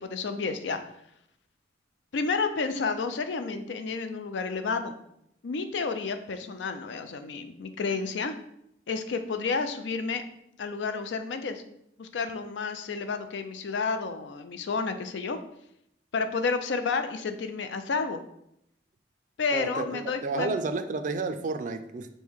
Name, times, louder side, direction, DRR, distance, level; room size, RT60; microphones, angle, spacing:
voice 1, 0.0-0.8 2.1-4.9 5.4-8.3 8.9-10.2 10.6-11.6 12.0-15.4 16.1-18.2 19.4-20.6, left 4 dB, 80° left, 8 dB, 0.4 m, -30 dB
voice 2, 19.5-22.1, right 3 dB, 45° right, 9 dB, 0.3 m, -31 dB
5.4 x 2.1 x 4.6 m, 0.76 s
head